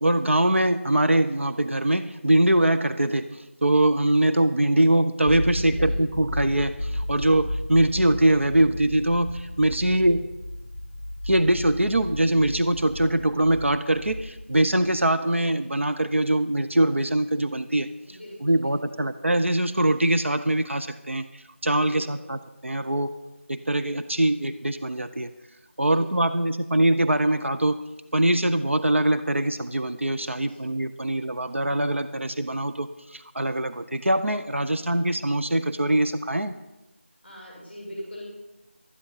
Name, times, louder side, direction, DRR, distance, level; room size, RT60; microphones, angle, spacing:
voice 1, 0.0-10.3 11.2-23.2 23.5-25.3 25.8-27.8 28.1-36.5, right 1 dB, 70° right, 10 dB, 0.8 m, -23 dB
sound 1, 5.2-15.1, left 1 dB, 30° left, 0.9 m, -34 dB
voice 2, 5.7-6.0 9.9-10.0 18.1-18.7 21.8-22.3 25.9-26.4 30.3-30.6 34.7-34.8 37.2-38.2, equal, 5° left, -5 dB, 6.2 m, -42 dB
13.0 x 10.5 x 5.5 m, 1.0 s
figure-of-eight pair, 175°, 7 cm